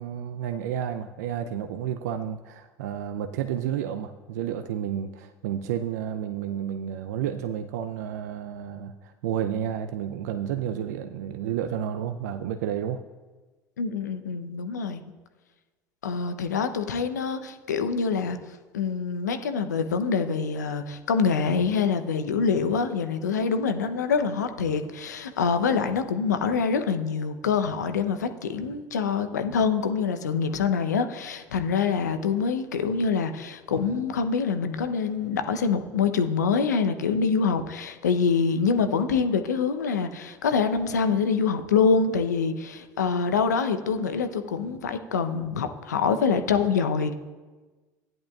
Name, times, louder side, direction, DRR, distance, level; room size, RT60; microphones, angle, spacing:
voice 1, 0.0-13.0, right 9 dB, 70° right, 7 dB, 0.5 m, -31 dB
voice 2, 13.8-15.0 16.0-18.4 18.7-47.1, left 5 dB, 85° left, 8 dB, 0.7 m, -25 dB
15.5 x 10.5 x 2.4 m, 1.3 s
hypercardioid pair, 70°, 9 cm